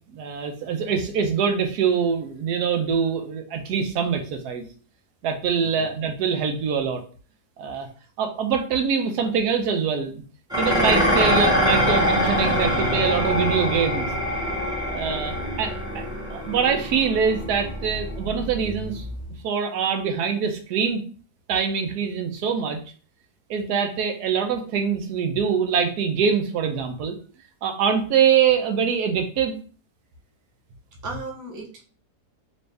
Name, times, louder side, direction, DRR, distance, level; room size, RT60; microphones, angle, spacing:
voice 1, 0.1-4.7 5.2-7.0 7.6-7.9 8.2-10.1 10.6-14.1 14.9-16.0 16.3-19.0 19.4-21.0 21.5-22.8 23.5-27.2 27.6-29.6, right 6 dB, 80° right, 5 dB, 1.2 m, -24 dB
Dishes pots and pans, 10.5-19.3, equal, 5° right, 1.0 m, -24 dB
voice 2, 31.0-31.9, right 2 dB, 25° right, -2 dB, 0.4 m, -36 dB
3.1 x 2.7 x 3.3 m, 0.40 s
omnidirectional pair, 1.7 m